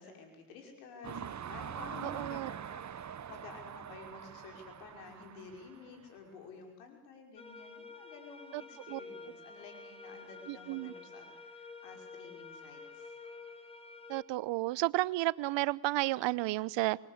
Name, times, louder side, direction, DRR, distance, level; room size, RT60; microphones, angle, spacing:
voice 1, 0.0-13.1, left 5 dB, 85° left, 4 dB, 5.7 m, -51 dB
sound 1, 1.0-6.1, right 8 dB, 40° right, 1.1 m, -44 dB
voice 2, 2.0-2.5 8.5-8.6 8.9-9.0 10.5-10.9 14.1-17.0, right 18 dB, 70° right, 21 dB, 0.9 m, -32 dB
sound 2, 7.4-14.2, left 4 dB, 15° left, 4.9 m, -50 dB
26.0 x 21.5 x 8.3 m, 0.92 s
hypercardioid pair, 60°, 46 cm